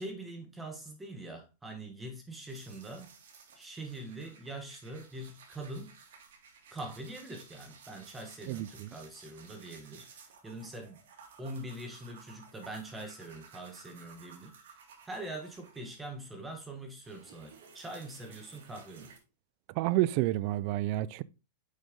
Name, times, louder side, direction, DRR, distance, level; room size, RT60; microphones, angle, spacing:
voice 1, 0.0-3.1 3.5-6.0 6.7-11.0 11.4-14.5 15.0-19.1, right 1 dB, 10° right, 1.2 m, -43 dB
sound 1, 2.5-16.3 16.6-19.2, right 6 dB, 65° right, 2.0 m, -56 dB
voice 2, 8.5-8.9 19.8-21.2, right 16 dB, 50° right, 0.4 m, -29 dB
6.5 x 5.3 x 3.5 m
hypercardioid pair, 135°, 0 cm